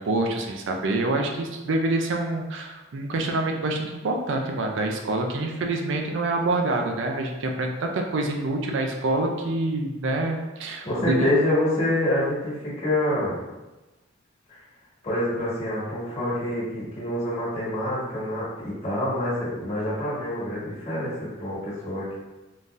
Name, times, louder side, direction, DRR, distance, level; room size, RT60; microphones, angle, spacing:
voice 1, 0.0-11.3, right 2 dB, 65° right, 2 dB, 0.4 m, -26 dB
voice 2, 10.8-13.4 14.5-14.6 15.0-22.2, left 1 dB, 35° left, -9 dB, 1.4 m, -26 dB
3.8 x 2.6 x 2.4 m, 1.1 s
head